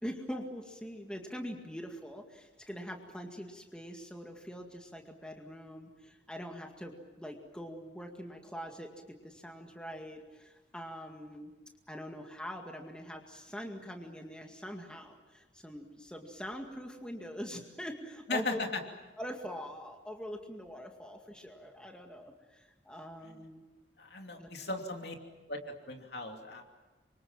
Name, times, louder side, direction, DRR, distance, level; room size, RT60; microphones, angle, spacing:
voice 1, 0.0-11.5 11.9-18.6 19.2-23.6 24.4-24.5, equal, 5° left, 2 dB, 2.1 m, -43 dB
voice 2, 18.3-18.8 24.0-25.1 25.5-25.6 25.9-26.6, left 2 dB, 60° left, 3 dB, 3.0 m, -36 dB
27.5 x 24.5 x 7.5 m, 1.2 s
head